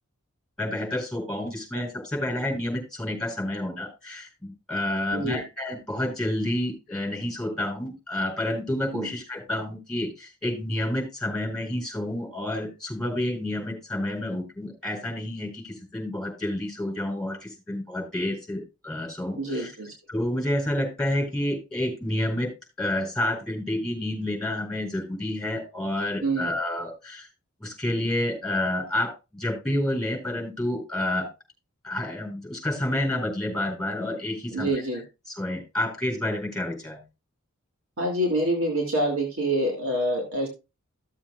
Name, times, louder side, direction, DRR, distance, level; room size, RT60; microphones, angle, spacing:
voice 1, 0.6-19.7 20.1-22.5 22.8-27.3 27.6-31.3 31.8-34.7 35.4-37.0, left 1 dB, 5° left, 0 dB, 4.5 m, -29 dB
voice 2, 5.1-5.4 8.9-9.1 19.4-19.9 26.2-26.5 34.5-35.0 38.0-40.5, right 1 dB, 75° right, 0 dB, 2.7 m, -26 dB
15.0 x 7.3 x 2.4 m, 0.27 s
head